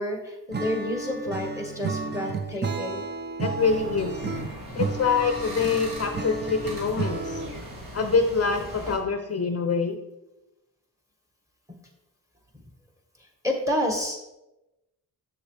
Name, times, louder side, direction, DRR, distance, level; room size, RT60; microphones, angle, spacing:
voice 1, 0.0-3.0 13.4-14.2, left 1 dB, 10° right, 2 dB, 1.5 m, -29 dB
Acoustic guitar / Strum, 0.5-7.7, right 4 dB, 25° right, 0.6 m, -32 dB
voice 2, 3.4-4.3 4.7-7.4 7.9-10.0, left 5 dB, 40° left, 6 dB, 0.6 m, -25 dB
sound 1, 3.6-9.0, right 1 dB, 60° right, 2.2 m, -39 dB
7.3 x 7.0 x 3.3 m, 0.96 s
wide cardioid pair, 110°, 38 cm